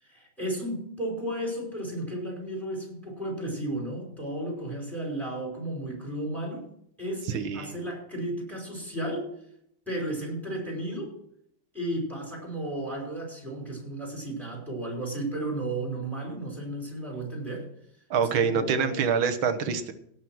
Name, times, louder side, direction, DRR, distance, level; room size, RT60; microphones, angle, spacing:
voice 1, 0.0-6.7 7.0-9.3 9.9-11.1 11.7-17.7 18.2-19.1, right 1 dB, ahead, -1 dB, 5.2 m, -33 dB
voice 2, 7.3-7.7 18.1-19.9, right 6 dB, 80° right, 9 dB, 1.9 m, -26 dB
17.5 x 6.2 x 6.2 m, 0.72 s
omnidirectional pair, 2.2 m